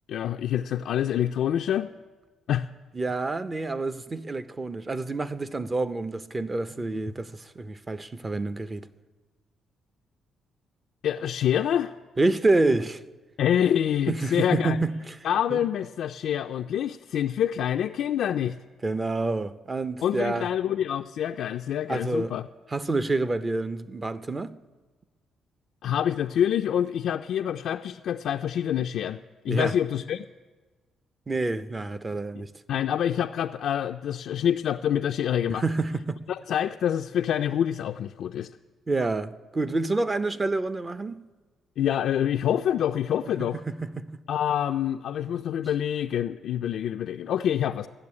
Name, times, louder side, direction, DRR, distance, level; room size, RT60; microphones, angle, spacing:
voice 1, 0.1-1.9 2.5-2.7 11.0-11.9 13.4-14.8 15.2-18.6 20.0-22.4 25.8-29.2 29.4-30.3 32.7-35.6 36.3-38.5 41.8-43.6 44.3-47.9, left 10 dB, 75° left, 0.3 m, -26 dB
voice 2, 2.9-8.9 12.2-13.0 14.1-15.2 15.5-15.6 18.8-20.5 21.9-22.3 22.7-24.5 29.5-29.7 31.3-32.5 35.5-36.2 38.9-41.2 43.7-44.1, right 2 dB, 25° right, 0.6 m, -28 dB
13.5 x 6.9 x 9.7 m
cardioid pair, 90°, 0 cm